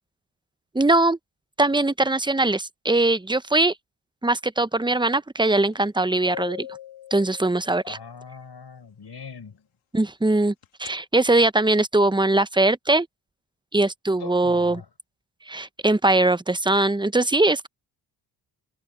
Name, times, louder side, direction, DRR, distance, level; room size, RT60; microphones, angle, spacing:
voice 1, 0.7-1.2 1.6-3.7 4.2-6.7 7.1-8.0 9.9-10.5 10.8-13.1 13.7-14.8 15.5-17.7, right 2 dB, 10° right, 1.0 m, -21 dB
sound 1, 5.7-5.8 6.3-8.0 10.6-10.9, left 12 dB, 75° left, 2.9 m, -38 dB
voice 2, 7.8-9.7 14.2-14.9, left 6 dB, 50° left, 4.9 m, -41 dB
open air
supercardioid pair, 50°, 49 cm